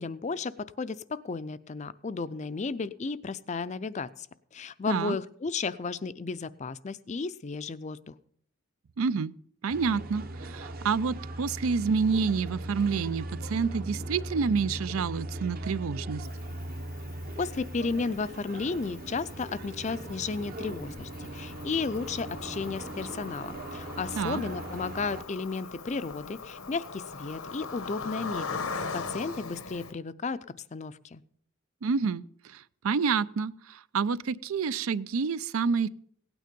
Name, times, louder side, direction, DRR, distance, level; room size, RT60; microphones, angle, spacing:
voice 1, 0.0-4.3 4.5-8.1 17.4-30.4 30.7-31.2, left 4 dB, 35° left, 15 dB, 0.4 m, -33 dB
voice 2, 9.0-9.4 9.6-16.3 24.1-24.4 31.8-35.9, right 5 dB, 80° right, 18 dB, 0.5 m, -28 dB
sound 1, 9.7-25.2, right 1 dB, 45° right, 0.8 m, -39 dB
Cricket, 16.2-29.9, left 4 dB, 85° left, 1.1 m, -41 dB
16.5 x 9.2 x 5.2 m, 0.63 s
head